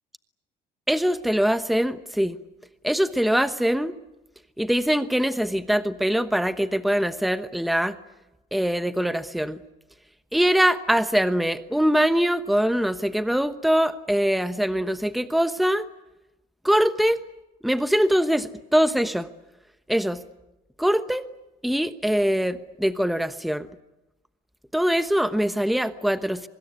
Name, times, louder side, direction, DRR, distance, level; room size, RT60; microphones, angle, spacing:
voice 1, 0.9-2.4 2.8-3.9 4.6-8.0 8.5-9.6 10.3-15.9 16.6-17.2 17.6-19.3 19.9-20.2 20.8-21.2 21.6-23.7 24.7-26.5, equal, ahead, 11 dB, 1.1 m, -23 dB
24.5 x 20.5 x 9.6 m, 0.97 s
cardioid pair, 110°, 17 cm